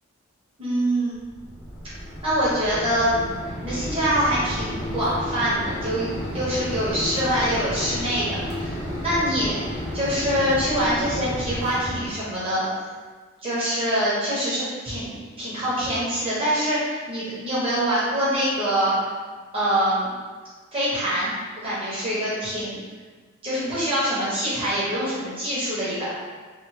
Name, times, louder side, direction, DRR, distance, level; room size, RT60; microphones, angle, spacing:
voice 1, 0.6-1.2 2.2-3.2 3.6-9.6 9.9-12.7 13.4-19.0 19.5-20.1 20.7-21.3 21.6-22.8 23.4-26.1, equal, 25° right, -9 dB, 1.1 m, -24 dB
Mechanisms, 1.2-12.1, equal, 30° left, 0.7 m, -32 dB
3.5 x 2.5 x 2.9 m, 1.4 s
head